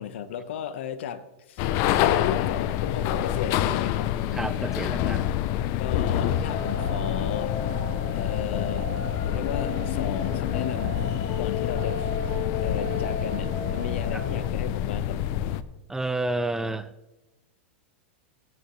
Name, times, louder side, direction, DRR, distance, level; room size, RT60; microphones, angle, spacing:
voice 1, 0.0-1.7 2.1-4.1 5.8-7.6 8.1-8.9 9.3-11.0 11.4-15.2, left 9 dB, 70° left, 12 dB, 1.0 m, -35 dB
sound 1, 1.6-15.6, left 11 dB, 50° left, 0.6 m, -27 dB
voice 2, 4.3-5.3 14.1-14.2 15.9-16.9, right 2 dB, 5° right, 13 dB, 0.5 m, -30 dB
sound 2, 5.9-14.4, left 2 dB, 30° left, 3.0 m, -35 dB
18.0 x 9.1 x 3.2 m, 1.0 s
hypercardioid pair, 120°, 7 cm